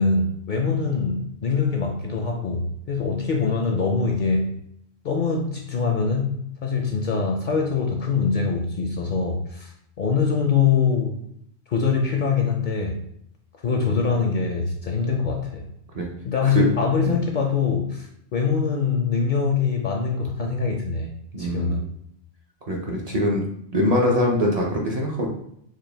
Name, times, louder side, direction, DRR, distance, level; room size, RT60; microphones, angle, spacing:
voice 1, 0.0-4.5 5.0-6.3 6.6-9.7 10.0-11.2 11.7-13.0 13.6-15.7 16.2-21.1 21.4-21.9, left 5 dB, 55° left, 1 dB, 0.6 m, -23 dB
voice 2, 21.3-21.8 22.7-23.5 23.7-25.3, equal, 45° right, -2 dB, 0.5 m, -23 dB
4.8 x 2.1 x 3.3 m, 0.73 s
omnidirectional pair, 1.1 m